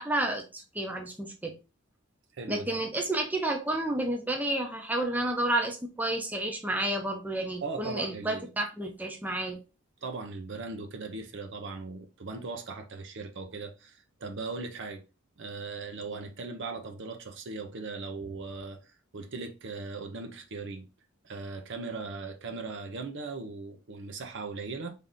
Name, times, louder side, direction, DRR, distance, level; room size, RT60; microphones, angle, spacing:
voice 1, 0.0-1.5 2.5-9.6, right 1 dB, 10° right, 0.7 m, -31 dB
voice 2, 2.3-2.8 7.6-8.4 10.0-15.0 15.4-20.9 21.2-24.9, right 3 dB, 60° right, 0.6 m, -38 dB
3.4 x 2.7 x 3.7 m
head